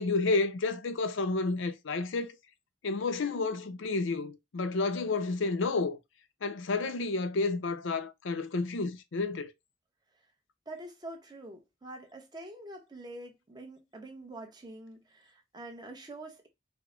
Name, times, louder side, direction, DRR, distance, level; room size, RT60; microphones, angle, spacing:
voice 1, 0.0-2.4 2.8-6.0 6.4-9.5, left 3 dB, 70° left, 0.6 m, -30 dB
voice 2, 10.7-16.5, right 1 dB, 20° right, 0.9 m, -45 dB
4.8 x 2.1 x 3.7 m
head